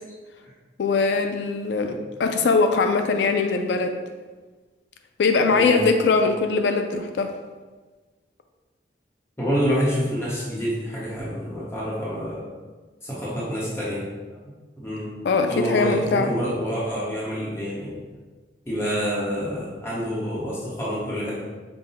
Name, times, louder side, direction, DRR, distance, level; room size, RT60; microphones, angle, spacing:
voice 1, 0.8-3.9 5.2-7.3 15.2-16.3, left 4 dB, 80° left, 5 dB, 0.4 m, -21 dB
voice 2, 5.5-5.9 9.4-12.5 13.0-14.1 14.8-15.1 15.5-18.0 18.7-21.4, equal, 15° left, -7 dB, 0.9 m, -27 dB
5.5 x 2.1 x 4.1 m, 1.3 s
head